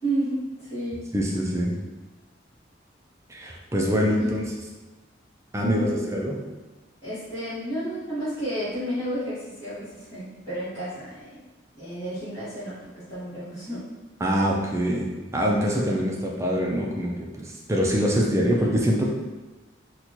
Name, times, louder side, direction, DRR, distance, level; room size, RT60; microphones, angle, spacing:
voice 1, 0.0-1.0 4.2-4.3 5.6-6.0 7.0-11.4 11.7-12.7 13.1-13.8, right 1 dB, 30° left, -17 dB, 1.5 m, -31 dB
voice 2, 1.1-1.8 3.3-4.5 5.5-6.4 14.2-19.0, equal, 15° right, -2 dB, 0.4 m, -24 dB
4.1 x 2.2 x 2.9 m, 1.2 s
head